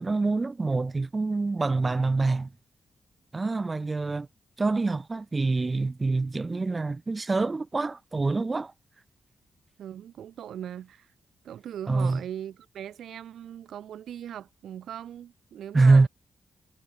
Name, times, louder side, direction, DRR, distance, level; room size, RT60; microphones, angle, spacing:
voice 1, 0.0-2.5 3.3-4.3 4.6-8.7 11.9-12.2 15.7-16.1, right 3 dB, 30° right, 2.0 m, -25 dB
voice 2, 9.8-11.1 11.4-16.1, right 10 dB, 90° right, 3.6 m, -40 dB
cardioid pair, 80°, 0 cm